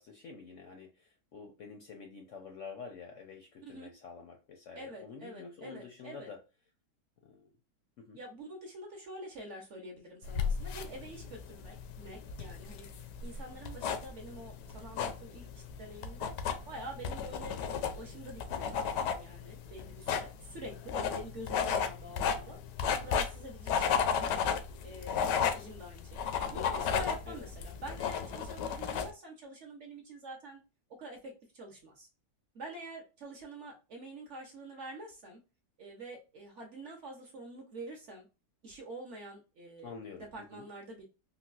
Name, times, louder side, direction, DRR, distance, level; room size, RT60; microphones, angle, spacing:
voice 1, 0.0-6.4 7.2-7.5 8.0-8.2 27.3-27.5 39.8-40.7, left 5 dB, 65° left, 3 dB, 0.8 m, -48 dB
voice 2, 4.7-6.3 8.1-12.9 13.2-16.3 16.7-22.6 22.9-24.3 24.8-30.6 31.0-32.1 32.5-35.4 35.8-38.3 38.6-39.9 40.3-41.1, right 1 dB, 50° right, 1 dB, 1.0 m, -46 dB
sound 1, 10.2-29.1, left 7 dB, 80° left, 1.2 m, -34 dB
3.8 x 2.3 x 2.3 m, 0.31 s
omnidirectional pair, 1.8 m